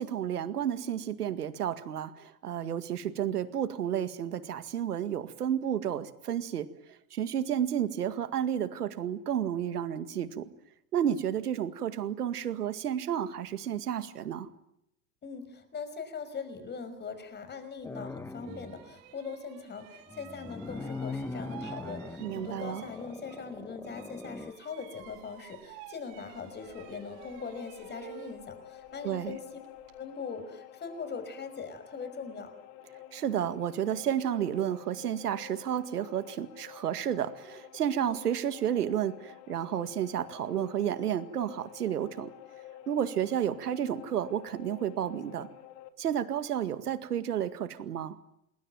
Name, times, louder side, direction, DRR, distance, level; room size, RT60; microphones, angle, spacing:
voice 1, 0.0-6.7 7.1-10.5 10.9-14.5 22.2-22.8 29.0-29.4 33.1-42.3 42.9-45.5 46.0-48.2, right 9 dB, 85° right, 12 dB, 2.1 m, -31 dB
voice 2, 15.2-29.4 30.0-32.5, left 5 dB, 20° left, 10 dB, 5.6 m, -41 dB
sound 1, 17.8-18.9 20.1-24.5, left 3 dB, 5° left, 1.0 m, -41 dB
sound 2, 17.8-17.9 18.4-23.6 23.8-30.0, right 12 dB, 55° right, 7.1 m, -51 dB
sound 3, 26.5-45.9, left 12 dB, 50° left, 2.9 m, -50 dB
29.0 x 21.0 x 9.3 m, 0.82 s
hypercardioid pair, 110°, 45 cm